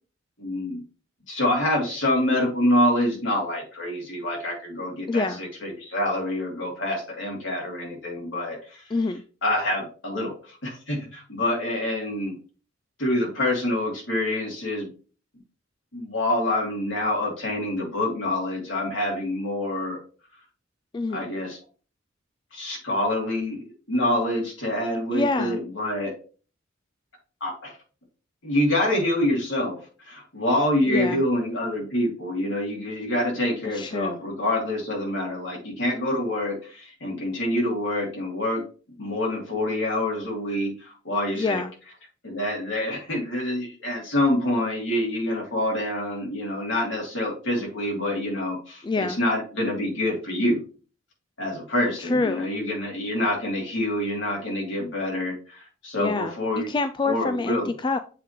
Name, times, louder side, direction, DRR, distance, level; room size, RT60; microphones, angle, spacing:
voice 1, 0.4-0.8 1.3-8.8 9.4-12.4 13.0-14.9 15.9-20.0 21.1-21.6 22.5-23.6 23.9-26.1 27.4-27.8 28.4-38.6 39.0-41.6 42.2-50.6 51.4-56.7 57.0-57.7, left 1 dB, 70° left, 3.1 m, -26 dB
voice 2, 5.1-5.4 8.9-9.2 20.9-21.3 25.1-25.6 30.9-31.2 33.7-34.2 41.3-41.7 48.8-49.2 52.0-52.5 56.0-56.3 56.7-58.0, left 3 dB, 25° left, 0.3 m, -26 dB
7.5 x 3.6 x 4.4 m
head